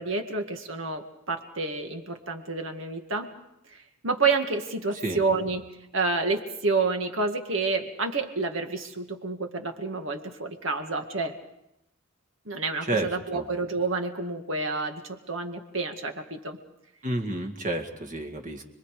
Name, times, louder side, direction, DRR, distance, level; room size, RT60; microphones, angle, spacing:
voice 1, 0.0-3.3 3.7-5.7 5.9-11.3 12.5-16.6, right 3 dB, 65° right, 5 dB, 2.1 m, -29 dB
voice 2, 12.8-13.4 17.0-18.6, right 1 dB, 40° right, 3 dB, 2.0 m, -30 dB
30.0 x 22.0 x 5.0 m, 0.87 s
head